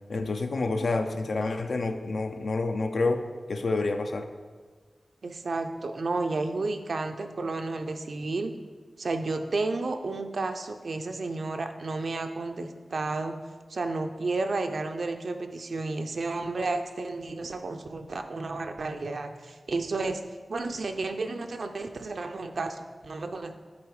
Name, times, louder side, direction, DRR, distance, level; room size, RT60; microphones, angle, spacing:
voice 1, 0.1-3.2 3.5-4.3, left 3 dB, 75° left, 6 dB, 0.5 m, -28 dB
voice 2, 5.2-8.5 9.0-13.3 13.7-20.2 20.5-23.6, right 3 dB, 70° right, 6 dB, 0.5 m, -32 dB
8.5 x 3.9 x 4.8 m, 1.5 s
wide cardioid pair, 75°, 0 cm